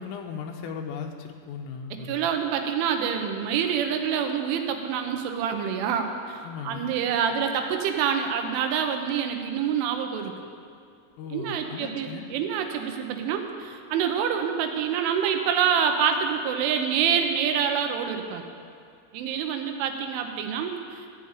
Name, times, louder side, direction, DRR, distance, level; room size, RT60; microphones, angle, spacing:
voice 1, 0.0-2.3 6.4-6.9 11.2-12.3, left 6 dB, 85° left, 2 dB, 3.3 m, -37 dB
voice 2, 2.0-10.3 11.3-18.4 19.1-21.1, right 7 dB, 80° right, 5 dB, 3.3 m, -26 dB
14.5 x 5.6 x 8.7 m, 2.3 s
omnidirectional pair, 5.7 m